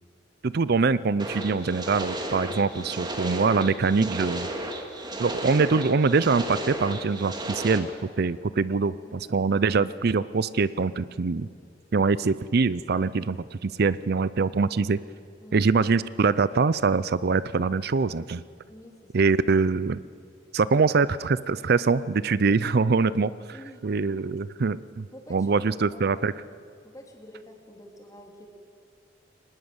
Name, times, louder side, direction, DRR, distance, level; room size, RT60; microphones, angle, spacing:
voice 1, 0.4-4.5 5.2-7.9 8.2-11.5 11.9-15.0 15.5-18.4 19.1-20.0 20.5-23.3 23.8-26.3, right 4 dB, 55° right, 17 dB, 0.5 m, -24 dB
sound 1, 1.2-7.8, right 1 dB, 25° right, 2.5 m, -34 dB
voice 2, 8.8-9.3 15.4-15.7 18.7-19.2 23.5-23.8 24.2-24.3 25.1-25.5 25.9-26.5 26.8-28.5, equal, 20° left, 1 dB, 3.6 m, -48 dB
24.0 x 20.0 x 8.0 m, 2.4 s
head